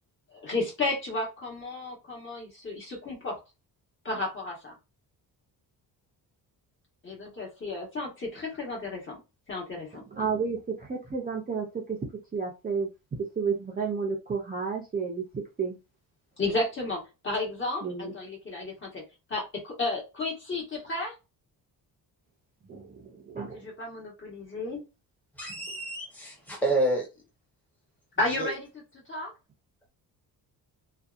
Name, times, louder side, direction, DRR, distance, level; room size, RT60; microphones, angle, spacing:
voice 1, 0.3-3.4 4.0-4.7 7.0-9.2 9.5-10.0 16.4-19.0 19.3-21.1 23.5-24.8 28.2-28.7 29.1-29.3, left 2 dB, 30° left, -2 dB, 1.2 m, -32 dB
voice 2, 10.1-12.0 12.3-12.9 13.4-15.8 17.8-18.1 22.7-23.7, right 5 dB, 25° right, 0 dB, 0.5 m, -31 dB
voice 3, 25.3-27.1 28.4-28.5, right 1 dB, 5° left, -1 dB, 0.9 m, -28 dB
2.6 x 2.3 x 2.4 m, 0.27 s
cardioid pair, 135°, 38 cm